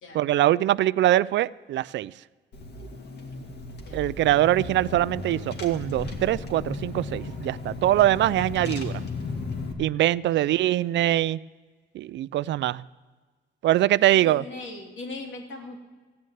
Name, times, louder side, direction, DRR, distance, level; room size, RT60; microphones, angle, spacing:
voice 1, 0.1-2.1 3.9-9.0 9.8-11.4 11.9-12.8 13.6-14.4, right 14 dB, 65° right, 19 dB, 0.4 m, -23 dB
Car / Engine, 2.5-9.7, left 3 dB, 55° left, 2.1 m, -35 dB
voice 2, 10.3-10.7 14.1-15.8, left 3 dB, 75° left, 2 dB, 2.8 m, -39 dB
14.5 x 6.5 x 9.4 m, 1.4 s
cardioid pair, 90°, 20 cm